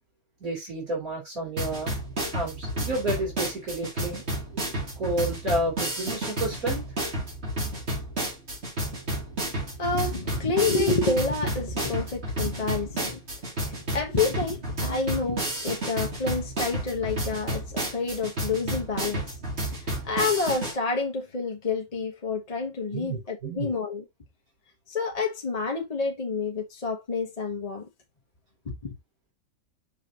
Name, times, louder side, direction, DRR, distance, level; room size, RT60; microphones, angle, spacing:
voice 1, 0.4-2.0 2.3-4.2 4.7-6.8 22.9-23.7, right 1 dB, 65° right, 3.5 m, -30 dB
sound 1, 1.6-20.7, right 1 dB, 45° right, 2.7 m, -31 dB
voice 2, 9.8-13.2 13.9-19.3 19.7-24.0 24.9-27.8 28.7-28.9, left 4 dB, 30° left, 0.9 m, -28 dB
6.4 x 5.3 x 2.8 m
omnidirectional pair, 1.6 m